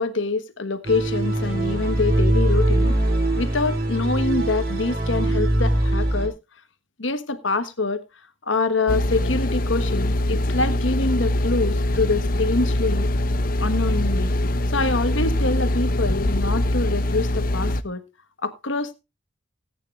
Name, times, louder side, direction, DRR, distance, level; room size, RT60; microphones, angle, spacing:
voice 1, 0.0-2.9 3.4-6.3 7.0-8.0 8.5-13.1 13.6-14.3 14.7-18.0 18.4-18.9, left 3 dB, 80° left, 1.4 m, -25 dB
sound 1, 0.8-6.3, right 1 dB, 50° right, 3.4 m, -22 dB
sound 2, 8.9-17.8, left 1 dB, 45° left, 0.7 m, -23 dB
18.0 x 9.6 x 2.5 m
head